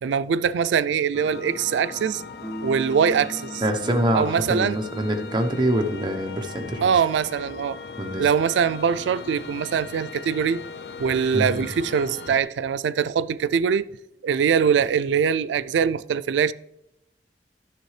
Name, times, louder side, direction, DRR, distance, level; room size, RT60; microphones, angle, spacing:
voice 1, 0.0-2.2 2.6-3.6 4.1-4.8 6.8-7.8 8.2-10.6 11.0-13.9 14.2-16.5, right 7 dB, 90° right, 0.3 m, -22 dB
sound 1, 1.1-12.4, left 4 dB, 65° left, 0.4 m, -39 dB
sound 2, 2.4-5.6, equal, 10° left, 0.5 m, -38 dB
voice 2, 3.6-6.9 8.0-8.3 11.3-11.6, right 1 dB, 25° right, 0.8 m, -25 dB
10.5 x 6.5 x 3.2 m
head